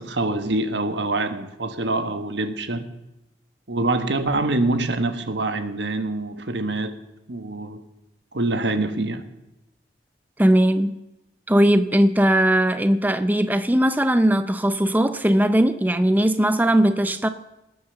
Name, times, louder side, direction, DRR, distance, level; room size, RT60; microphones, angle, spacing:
voice 1, 0.0-2.9 3.7-7.0 7.3-7.9 8.3-9.2, right 2 dB, 80° right, 1.4 m, -25 dB
voice 2, 10.4-11.0 11.5-17.3, right 1 dB, 10° right, 0.6 m, -19 dB
19.5 x 9.6 x 6.9 m
head